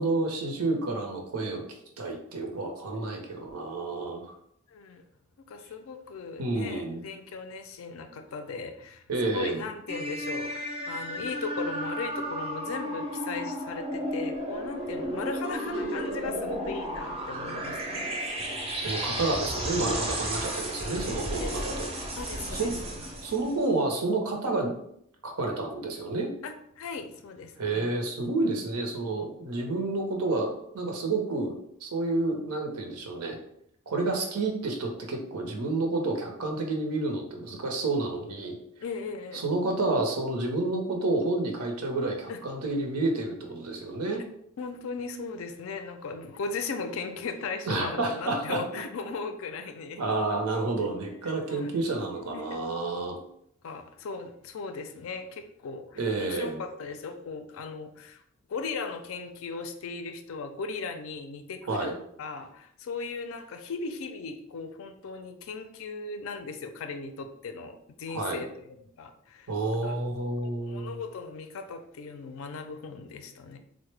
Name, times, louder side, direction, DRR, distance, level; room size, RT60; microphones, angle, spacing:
voice 1, 0.0-1.6 2.0-4.2 6.4-7.0 9.1-9.7 18.7-21.9 22.5-22.7 23.2-24.8 25.2-26.3 27.6-31.5 31.8-33.4 33.9-38.6 39.3-44.2 47.7-48.6 50.0-53.2 56.0-56.6 61.7-62.0 68.1-68.4 69.5-71.0, right 2 dB, 85° right, 2 dB, 0.7 m, -29 dB
voice 2, 4.7-5.0 5.5-18.4 21.3-21.5 22.2-22.9 26.4-27.9 38.8-39.4 42.3-42.4 44.6-50.0 50.8-50.9 51.2-51.7 52.3-52.6 53.6-58.2 58.5-61.9 62.2-69.5 69.8-70.0 70.4-73.6, left 4 dB, 65° left, 8 dB, 0.4 m, -38 dB
sound 1, 9.9-23.6, right 1 dB, 25° right, 0.5 m, -33 dB
3.6 x 2.1 x 3.2 m, 0.73 s
head